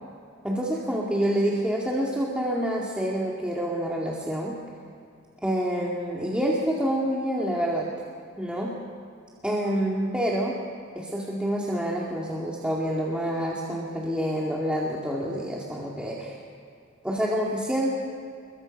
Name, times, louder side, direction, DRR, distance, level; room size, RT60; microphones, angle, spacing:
voice 1, 0.4-4.6 5.4-7.9 8.4-8.8 9.4-10.6 10.9-16.4 17.0-18.0, equal, 5° right, -4 dB, 2.3 m, -27 dB
28.0 x 23.0 x 5.4 m, 2.5 s
head